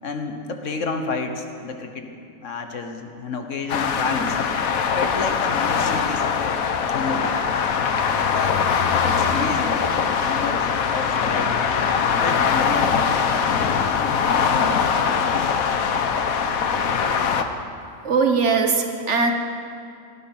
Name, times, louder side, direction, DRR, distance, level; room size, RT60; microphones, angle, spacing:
voice 1, 0.0-4.4 4.9-6.7 6.9-7.4 8.1-8.6 9.0-9.8 10.2-11.5 12.2-13.0 13.5-13.9 14.2-14.9, left 4 dB, 60° left, 5 dB, 1.5 m, -30 dB
sound 1, 3.7-17.4, left 6 dB, 85° left, 1.3 m, -22 dB
voice 2, 18.0-19.3, right 4 dB, 55° right, 4 dB, 1.5 m, -20 dB
18.0 x 12.5 x 6.0 m, 2.4 s
omnidirectional pair, 1.5 m